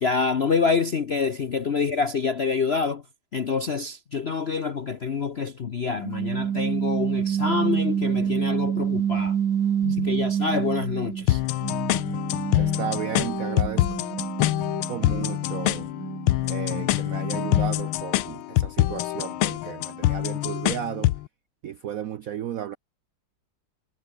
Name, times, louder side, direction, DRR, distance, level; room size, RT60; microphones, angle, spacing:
voice 1, 0.0-3.0 3.3-9.4 9.8-11.4, left 5 dB, 55° left, 0.7 m, -26 dB
sound 1, 6.0-11.3 11.6-17.8, right 9 dB, 55° right, 1.7 m, -28 dB
sound 2, 11.3-21.3, left 15 dB, 85° left, 1.5 m, -25 dB
voice 2, 12.5-13.9 14.9-15.9 16.5-21.2 21.6-22.8, right 10 dB, 70° right, 0.8 m, -34 dB
omnidirectional pair, 2.3 m